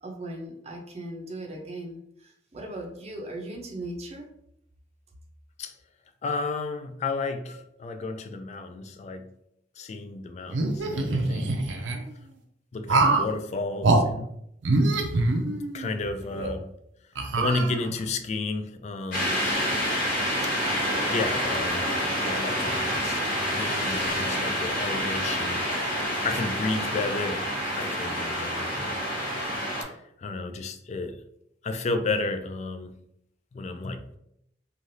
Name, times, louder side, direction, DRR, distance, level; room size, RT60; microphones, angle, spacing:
voice 1, 0.0-4.3 16.3-16.4, right 1 dB, 35° right, 0.6 m, -38 dB
voice 2, 6.2-9.3 9.8-12.0 12.7-14.3 15.7-16.7 17.4-19.4 20.4-20.5 21.1-23.2 23.5-25.9 26.2-27.5 27.8-28.7 29.9-31.2 31.6-33.0 33.5-34.0, left 3 dB, 40° left, 0.3 m, -32 dB
sound 1, 10.5-12.0 12.9-13.3 13.8-14.0 14.6-15.9 16.4-16.5 17.2-18.1, right 2 dB, 80° right, 0.5 m, -24 dB
sound 2, 19.1-29.8, equal, 55° left, 0.9 m, -28 dB
3.2 x 2.4 x 2.6 m
head